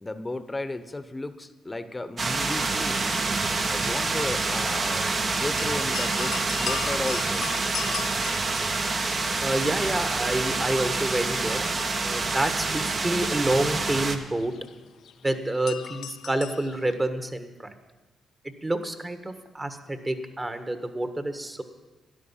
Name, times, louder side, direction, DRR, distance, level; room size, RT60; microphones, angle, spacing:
voice 1, 0.0-3.1 3.6-5.1 5.3-7.5, left 2 dB, 20° left, 11 dB, 0.9 m, -34 dB
sound 1, 2.2-14.2, right 3 dB, 50° right, 1.2 m, -27 dB
sound 2, 5.6-9.6 9.8-16.9, left 9 dB, 75° left, 0.5 m, -39 dB
voice 2, 9.4-11.7 12.0-14.5 15.2-17.7 18.4-21.6, right 1 dB, 25° right, 8 dB, 1.4 m, -28 dB
13.0 x 10.5 x 5.7 m, 1.2 s
supercardioid pair, 60°, 0 cm